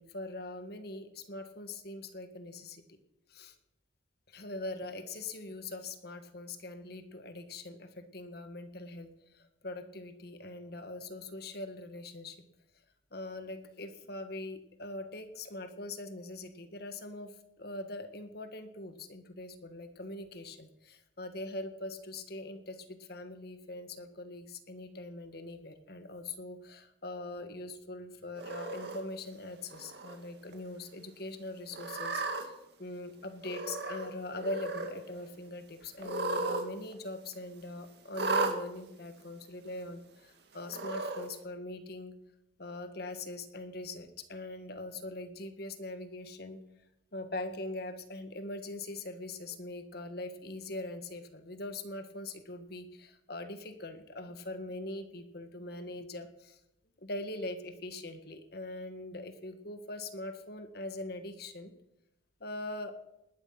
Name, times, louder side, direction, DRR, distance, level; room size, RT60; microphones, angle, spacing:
voice 1, 0.0-2.8 3.3-3.5 4.3-9.1 9.3-12.4 13.1-42.1 42.6-46.6 47.1-56.6 57.0-61.7 62.4-62.9, left 2 dB, 50° left, 8 dB, 1.7 m, -42 dB
Cat, 28.4-29.0 29.7-30.1 30.5-30.6 31.7-32.4 33.4-34.1 34.3-34.9 36.0-36.6 36.9-37.0 38.1-38.5 39.4-39.5 40.7-41.2, right 3 dB, 55° right, 2.3 m, -34 dB
19.5 x 11.5 x 5.9 m, 0.86 s
head